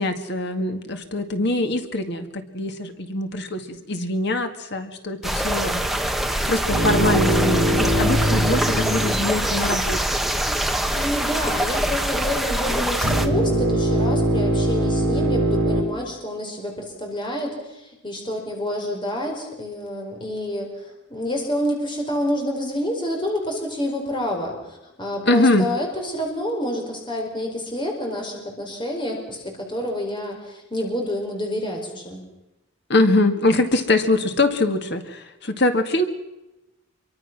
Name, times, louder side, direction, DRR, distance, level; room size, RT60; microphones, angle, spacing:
voice 1, 0.0-5.8 6.5-10.2 25.3-25.7 32.9-36.0, left 2 dB, 55° left, 7 dB, 2.1 m, -23 dB
sound 1, 5.2-13.3, right 1 dB, ahead, 1.3 m, -24 dB
sound 2, 6.7-10.1 13.0-15.8, right 1 dB, 60° right, 5.8 m, -22 dB
voice 2, 10.9-32.2, equal, 20° left, 1 dB, 4.8 m, -28 dB
26.0 x 23.5 x 6.2 m, 0.98 s
head